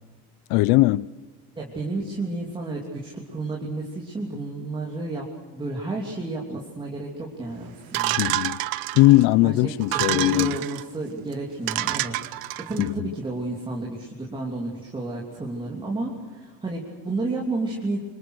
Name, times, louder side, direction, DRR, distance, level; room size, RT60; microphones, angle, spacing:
voice 1, 0.5-1.1 8.2-8.6 8.9-10.6 12.8-13.1, left 18 dB, 75° left, 0.7 m, -19 dB
voice 2, 1.6-5.2 5.5-8.2 9.4-18.0, right 2 dB, 15° right, 3.0 m, -31 dB
sound 1, 7.9-9.2 9.8-10.8 11.3-11.4 11.7-12.9, right 16 dB, 70° right, 1.3 m, -28 dB
27.0 x 26.0 x 6.6 m
cardioid pair, 180°, 38 cm